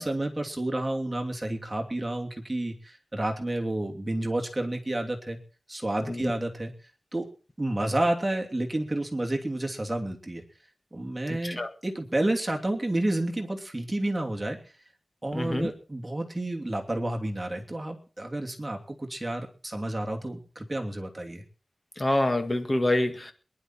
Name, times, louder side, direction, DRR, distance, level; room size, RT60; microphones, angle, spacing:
voice 1, 0.0-5.4 5.7-6.7 7.1-7.3 7.6-10.4 10.9-14.6 15.2-21.4, right 1 dB, 20° right, 1 dB, 2.9 m, -30 dB
voice 2, 11.3-11.7 15.3-15.7 22.0-23.3, left 1 dB, 30° left, 7 dB, 1.8 m, -26 dB
22.0 x 11.0 x 4.4 m, 0.37 s
wide cardioid pair, 90°, 0 cm